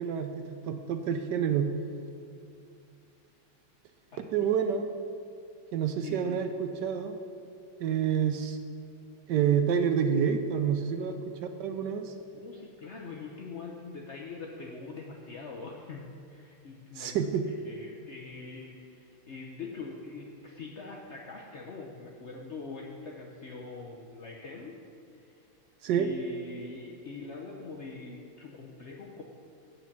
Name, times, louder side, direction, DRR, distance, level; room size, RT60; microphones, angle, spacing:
voice 1, 0.0-1.7 4.2-4.9 5.7-7.2 7.8-8.6 9.3-12.1 17.0-17.5 25.8-26.1, right 8 dB, 75° right, 7 dB, 1.0 m, -28 dB
voice 2, 4.1-4.6 6.0-6.4 12.3-17.2 17.5-24.8 25.1-25.3 26.0-29.2, left 4 dB, 75° left, -1 dB, 0.6 m, -43 dB
8.7 x 8.2 x 5.9 m, 2.5 s
omnidirectional pair, 2.3 m